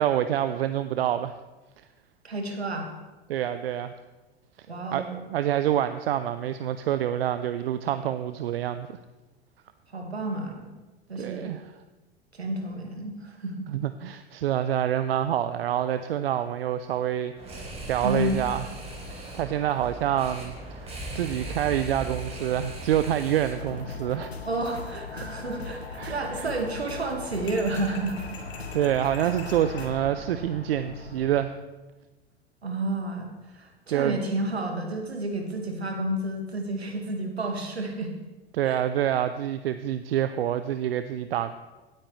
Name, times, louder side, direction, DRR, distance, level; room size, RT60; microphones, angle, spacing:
voice 1, 0.0-1.4 3.3-3.9 4.9-5.0 5.3-9.0 11.2-11.6 13.7-18.7 19.1-24.3 26.0-26.5 28.7-31.5 33.9-34.2 38.5-41.5, right 11 dB, 70° right, 11 dB, 0.5 m, -27 dB
voice 2, 2.2-2.9 4.7-5.2 9.9-10.7 11.1-11.5 12.3-13.7 18.0-18.4 24.4-28.2 32.6-38.1 38.6-38.8, right 1 dB, 85° right, 3 dB, 1.8 m, -31 dB
sound 1, 17.3-23.8, right 1 dB, 20° right, 3.5 m, -38 dB
sound 2, 23.6-31.4, left 4 dB, 90° left, 1.1 m, -39 dB
sound 3, 27.5-29.9, left 4 dB, 35° left, 2.4 m, -45 dB
17.5 x 8.7 x 3.2 m, 1.1 s
figure-of-eight pair, 85°, 31 cm